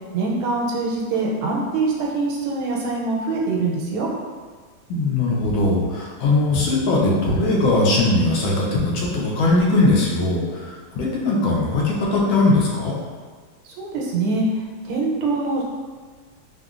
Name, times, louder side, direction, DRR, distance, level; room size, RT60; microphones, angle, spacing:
voice 1, 0.1-4.1 13.6-14.5 14.9-15.6, right 3 dB, 85° right, -3 dB, 1.4 m, -24 dB
voice 2, 4.9-12.9, left 2 dB, 75° left, -3 dB, 1.3 m, -20 dB
3.7 x 2.1 x 2.3 m, 1.5 s
omnidirectional pair, 2.2 m